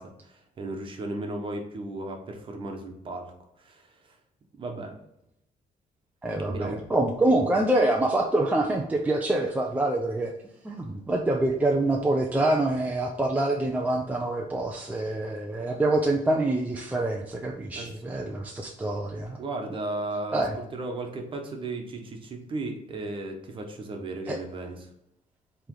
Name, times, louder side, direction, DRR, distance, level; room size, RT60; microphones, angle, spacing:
voice 1, 0.0-3.3 3.6-3.9 4.5-5.0 6.5-6.8 17.7-18.1 19.4-24.9, right 2 dB, 35° right, 3 dB, 1.2 m, -35 dB
voice 2, 6.2-10.3 10.6-19.4 20.3-20.6 24.3-24.4, right 2 dB, 10° right, 0 dB, 0.6 m, -26 dB
7.8 x 3.4 x 3.8 m, 0.81 s
cardioid pair, 150°, 14 cm